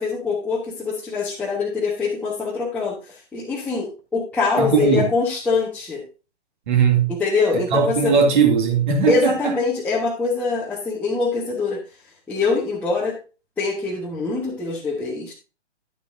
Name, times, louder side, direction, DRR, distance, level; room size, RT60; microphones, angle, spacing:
voice 1, 0.0-6.0 7.1-8.1 9.1-11.8 12.3-13.2 13.6-15.3, left 4 dB, 5° left, 1.4 m, -24 dB
voice 2, 4.6-5.1 6.7-7.1 7.7-9.5, right 6 dB, 40° right, 2.5 m, -18 dB
10.5 x 8.2 x 2.7 m
figure-of-eight pair, 130°, 35 cm